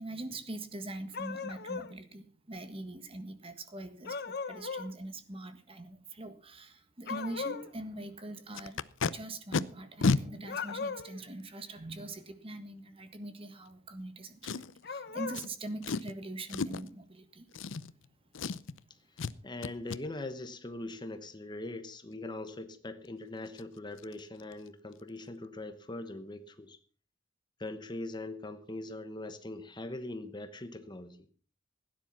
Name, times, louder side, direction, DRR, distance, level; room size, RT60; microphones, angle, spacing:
voice 1, 0.0-17.5 19.3-19.4, right 2 dB, 30° right, 9 dB, 1.6 m, -43 dB
sound 1, 1.1-1.9 4.1-4.9 7.1-7.7 10.4-11.2 14.8-15.4, left 5 dB, 55° left, 1.1 m, -38 dB
Packing tape duct tape, 8.5-9.1 9.5-9.6 10.0-10.2 11.0-11.1 14.4-14.9 15.3-15.5 15.8-16.1 16.5-16.9 17.5-18.1 18.3-18.8 19.2-19.3 19.6-20.0 23.0-23.1 23.5-23.6 24.0-24.1 24.4-24.7 24.9-25.0, left 4 dB, 80° left, 0.7 m, -32 dB
voice 2, 19.1-26.8 27.6-31.2, left 2 dB, 25° left, 10 dB, 1.0 m, -41 dB
16.5 x 10.0 x 5.8 m, 0.43 s
head